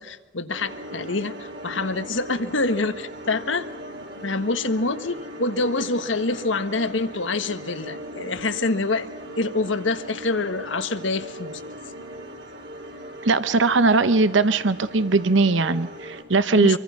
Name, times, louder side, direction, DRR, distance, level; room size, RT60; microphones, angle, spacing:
voice 1, 0.0-3.7 4.2-9.1 9.3-11.6 16.5-16.8, left 3 dB, 80° left, 10 dB, 1.5 m, -26 dB
sound 1, 0.5-16.2, equal, 60° right, 4.0 m, -39 dB
voice 2, 13.2-16.8, right 3 dB, 75° right, 13 dB, 0.9 m, -19 dB
26.5 x 24.5 x 5.9 m, 1.1 s
head